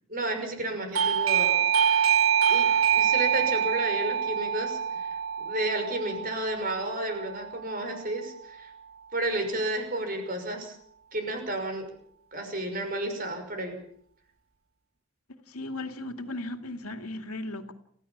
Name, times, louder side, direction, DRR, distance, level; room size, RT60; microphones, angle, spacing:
voice 1, 0.1-1.6 2.5-8.7 9.1-10.8 11.1-11.9 12.3-13.8, right 1 dB, 40° right, 6.0 m, -32 dB
Doorbell, 0.9-7.4, right 8 dB, 70° right, 1.4 m, -25 dB
voice 2, 15.5-17.7, left 2 dB, 85° left, 2.4 m, -36 dB
29.0 x 15.5 x 7.4 m
head